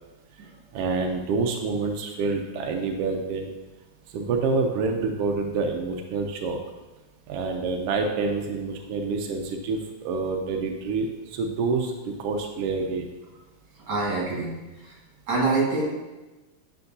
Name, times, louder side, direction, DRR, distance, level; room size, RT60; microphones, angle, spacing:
voice 1, 0.7-3.5 4.1-6.6 7.3-13.1, right 4 dB, 90° right, 3 dB, 1.3 m, -27 dB
voice 2, 13.9-15.0 15.3-15.9, right 3 dB, 45° right, -5 dB, 2.4 m, -26 dB
9.4 x 4.5 x 2.7 m, 1.1 s
omnidirectional pair, 3.4 m